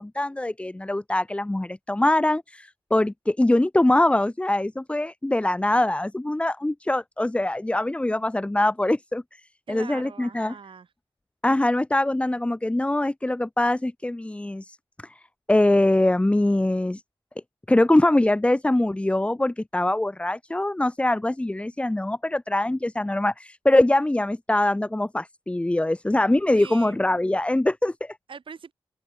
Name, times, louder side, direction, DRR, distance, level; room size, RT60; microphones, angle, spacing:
voice 1, 0.0-9.2 9.7-10.5 11.4-14.8 15.0-15.1 15.5-17.0 17.7-28.2, left 1 dB, 10° left, 0.4 m, -23 dB
voice 2, 9.7-10.9 26.6-27.0 28.3-28.7, right 6 dB, 55° right, 0.8 m, -41 dB
open air
cardioid pair, 45°, 10 cm